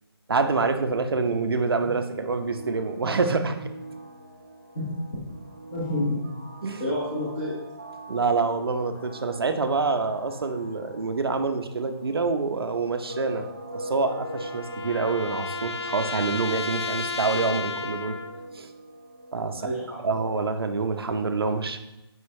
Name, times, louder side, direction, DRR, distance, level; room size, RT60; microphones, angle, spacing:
voice 1, 0.3-3.6 6.6-6.8 8.1-13.5 13.7-18.2 18.5-18.7 19.3-19.7 20.0-21.8, right 4 dB, 65° right, 6 dB, 0.8 m, -26 dB
sound 1, 2.4-20.0, right 1 dB, 20° right, 0.3 m, -42 dB
voice 2, 5.7-6.3 6.8-7.6 19.5-20.3, left 1 dB, 25° left, -9 dB, 1.3 m, -29 dB
sound 2, 13.7-18.5, left 4 dB, 80° left, 0.5 m, -33 dB
8.0 x 5.3 x 3.2 m, 0.99 s
hypercardioid pair, 180°, 14 cm